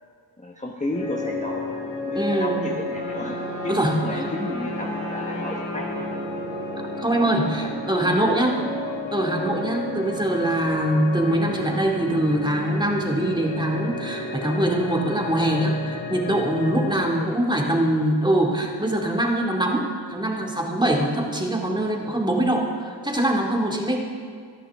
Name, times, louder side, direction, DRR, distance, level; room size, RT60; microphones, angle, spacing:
voice 1, 0.4-3.4 3.6-6.1 7.6-8.6 17.1-17.4 17.9-18.0, left 1 dB, 15° left, -1 dB, 1.2 m, -33 dB
sound 1, 0.9-16.9, left 1 dB, 45° left, 2.8 m, -32 dB
voice 2, 2.2-2.6 3.7-4.0 7.0-8.6 9.1-24.0, right 1 dB, 10° right, -1 dB, 2.2 m, -23 dB
Wind instrument woodwind instrument, 2.7-7.6, left 1 dB, 80° left, 4.8 m, -36 dB
26.0 x 11.0 x 3.6 m, 2.1 s
wide cardioid pair, 95°, 43 cm